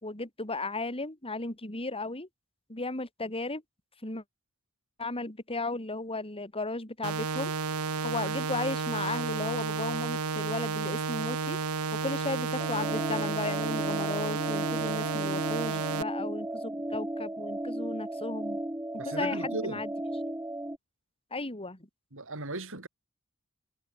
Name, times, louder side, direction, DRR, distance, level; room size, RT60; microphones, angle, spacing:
voice 1, 0.0-2.3 2.7-3.6 4.0-4.2 5.0-7.5 8.0-11.6 11.9-18.6 19.0-19.9 21.3-21.8, left 2 dB, 25° left, 4.4 m, -35 dB
sound 1, 7.0-16.0, right 4 dB, 85° right, 1.1 m, -32 dB
sound 2, 12.6-20.8, right 1 dB, 10° right, 1.2 m, -35 dB
voice 2, 19.0-19.8 22.1-22.9, right 2 dB, 65° right, 5.5 m, -36 dB
head